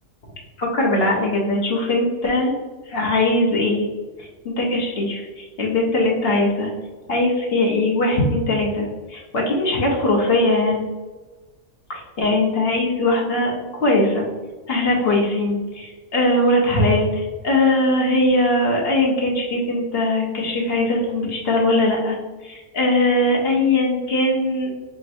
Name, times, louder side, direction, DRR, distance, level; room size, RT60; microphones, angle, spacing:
voice 1, 0.6-2.6 2.9-3.8 4.2-6.7 7.1-10.9 11.9-14.3 14.7-24.7, left 2 dB, 50° left, -2 dB, 1.1 m, -20 dB
5.1 x 3.0 x 2.6 m, 1.2 s
omnidirectional pair, 1.5 m